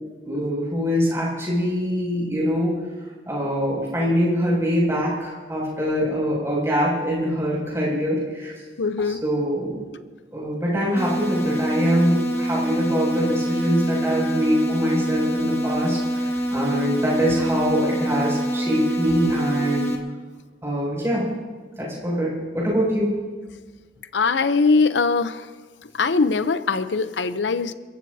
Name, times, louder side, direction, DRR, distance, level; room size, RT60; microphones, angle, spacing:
voice 1, 0.2-2.7 3.3-8.5 9.0-9.8 10.3-19.9 20.6-21.2 21.8-23.1, equal, 15° right, -5 dB, 6.5 m, -23 dB
voice 2, 8.8-9.2 24.1-25.4 25.9-27.7, left 4 dB, 90° left, 11 dB, 0.7 m, -21 dB
sound 1, 11.0-20.0, right 1 dB, 15° left, 1.6 m, -25 dB
29.0 x 15.0 x 2.8 m, 1.4 s
head